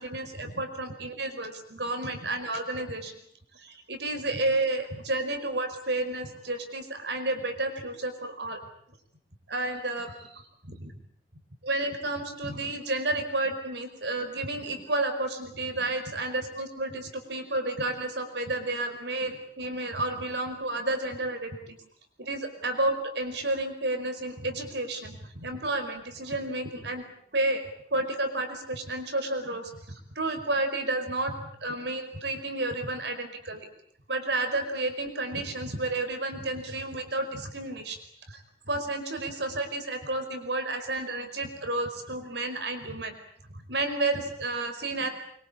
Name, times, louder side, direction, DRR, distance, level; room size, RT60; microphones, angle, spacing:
voice 1, 0.0-3.1 3.5-8.6 9.5-10.4 10.7-10.9 11.6-21.8 22.2-27.0 27.3-27.6 27.9-33.7 34.1-38.0 38.3-43.1 43.5-45.1, right 2 dB, 65° right, 7 dB, 5.1 m, -31 dB
25.0 x 24.0 x 8.8 m, 0.67 s
head